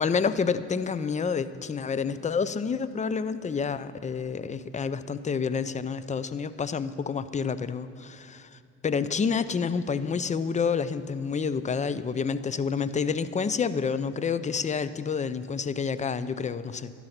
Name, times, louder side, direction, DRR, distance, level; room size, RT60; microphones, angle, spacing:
voice 1, 0.0-16.9, left 5 dB, 25° left, 14 dB, 0.5 m, -29 dB
12.0 x 11.5 x 5.8 m, 2.6 s
cardioid pair, 90°, 30 cm